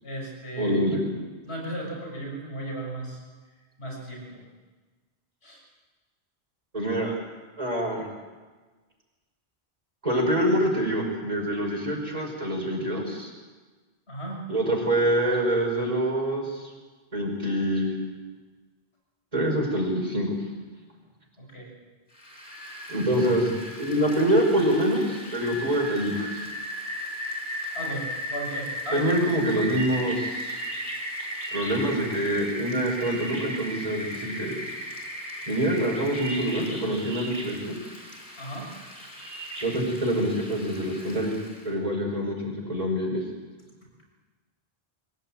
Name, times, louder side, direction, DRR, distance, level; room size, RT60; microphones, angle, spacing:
voice 1, 0.0-0.8 1.4-3.2 3.8-4.4 5.4-5.6 14.1-14.4 21.4-21.7 27.7-29.1 29.4-29.6 38.4-38.7, right 1 dB, 80° left, -1 dB, 6.6 m, -35 dB
voice 2, 0.6-1.0 6.7-7.1 7.6-8.1 10.0-13.3 14.5-16.7 17.1-17.9 19.3-20.3 22.9-23.5 23.8-26.5 28.9-30.5 31.5-34.6 35.5-37.8 39.6-41.3 41.6-43.2, equal, 35° right, -1 dB, 5.5 m, -25 dB
Rain, 22.2-41.6, equal, 55° left, 5.5 m, -36 dB
24.0 x 16.5 x 8.9 m, 1.3 s
omnidirectional pair, 1.1 m